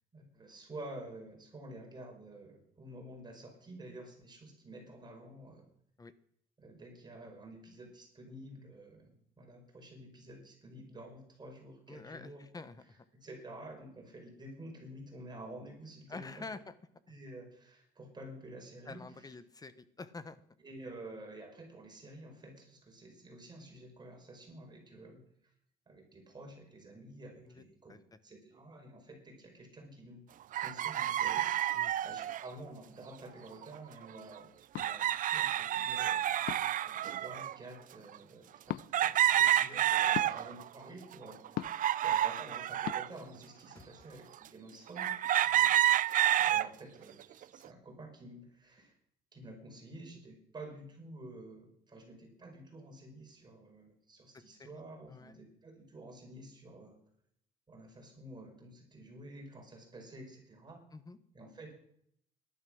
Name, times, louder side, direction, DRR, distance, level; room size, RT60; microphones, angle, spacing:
voice 1, 0.1-5.7 6.6-12.4 12.9-16.5 17.1-19.3 20.6-25.2 25.9-28.0 28.2-30.2 30.6-36.3 36.8-45.2 46.4-48.9 49.3-57.0 57.7-60.8 61.3-61.8, right 1 dB, 25° right, 2 dB, 5.2 m, -50 dB
voice 2, 11.9-13.0 16.1-16.7 18.9-20.4 27.5-27.6 27.9-28.0 31.7-31.9 36.6-36.8 40.0-40.4 43.7-43.9 45.4-45.7 54.3-54.7 55.1-55.4 60.9-61.2, left 3 dB, 20° left, 14 dB, 1.1 m, -48 dB
sound 1, 30.5-32.5 33.6-33.8 34.0-34.1 34.8-37.6 38.1-38.2 38.9-40.7 41.1-43.1 43.7-43.8 45.0-46.7 47.2-47.7, right 12 dB, 55° right, 0.6 m, -29 dB
sound 2, 34.7-34.9 36.5-36.8 38.7-38.9 40.1-40.3 41.6-41.9 42.9-43.0, left 15 dB, 65° left, 0.5 m, -37 dB
18.0 x 11.5 x 6.4 m, 0.71 s
cardioid pair, 110°, 17 cm